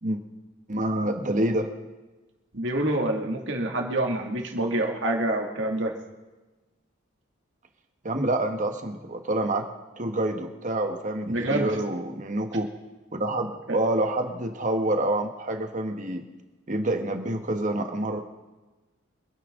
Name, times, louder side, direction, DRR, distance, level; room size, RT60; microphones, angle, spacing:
voice 1, 0.7-1.7 8.0-9.7 10.0-12.7 13.1-16.2 16.7-18.2, right 1 dB, 40° right, 5 dB, 1.4 m, -27 dB
voice 2, 2.5-5.9 11.3-11.8 13.7-13.8, right 1 dB, 65° right, 2 dB, 2.3 m, -27 dB
26.0 x 10.0 x 3.9 m, 1.2 s
head